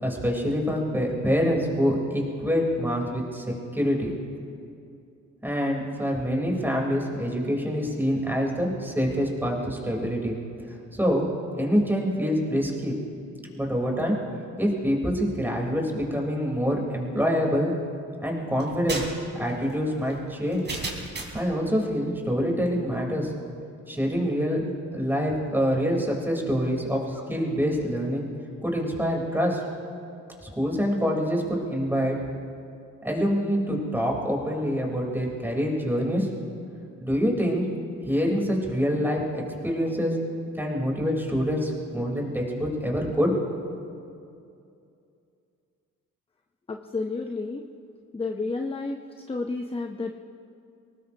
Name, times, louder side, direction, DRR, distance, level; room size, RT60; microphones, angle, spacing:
voice 1, 0.0-4.1 5.4-10.4 10.9-11.3 11.5-13.0 13.5-14.2 14.6-17.7 18.2-19.0 19.3-20.7 21.3-23.3 23.9-24.6 24.9-28.3 28.6-29.6 30.4-32.1 33.0-36.3 37.0-37.7 38.0-40.1 40.6-43.3, equal, 5° right, -1 dB, 3.8 m, -26 dB
sound 1, 18.6-21.5, right 3 dB, 35° right, 3.5 m, -35 dB
voice 2, 46.7-47.7 48.1-49.0 49.3-50.1, left 3 dB, 20° left, 4 dB, 0.8 m, -31 dB
23.5 x 19.5 x 2.9 m, 2.6 s
cardioid pair, 90°, 30 cm